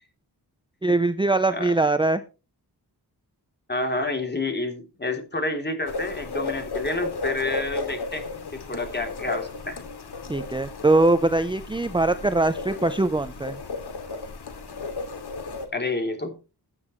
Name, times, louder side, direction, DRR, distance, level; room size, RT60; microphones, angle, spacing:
voice 1, 0.8-2.2 10.3-13.6, right 2 dB, 10° right, 10 dB, 0.7 m, -22 dB
voice 2, 3.7-8.2 8.5-9.8 15.7-16.3, left 2 dB, 25° left, 5 dB, 3.4 m, -29 dB
sound 1, 5.9-15.7, left 3 dB, 80° left, 2.7 m, -34 dB
16.0 x 9.5 x 3.2 m, 0.31 s
wide cardioid pair, 110°, 40 cm